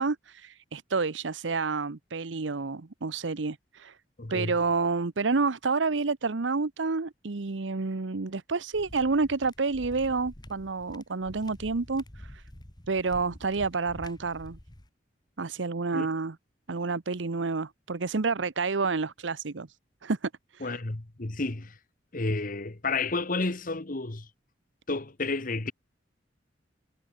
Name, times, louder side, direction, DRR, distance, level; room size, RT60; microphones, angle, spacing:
voice 1, 0.0-4.0 4.3-12.4 12.9-14.6 15.4-16.3 16.7-19.7 20.0-20.8, right 4 dB, 90° right, 0.9 m, -29 dB
voice 2, 4.2-4.5 15.9-16.1 20.6-21.7 22.1-24.3 24.9-25.7, left 3 dB, 50° left, 1.4 m, -31 dB
sound 1, 8.7-14.9, left 1 dB, 25° left, 1.6 m, -48 dB
head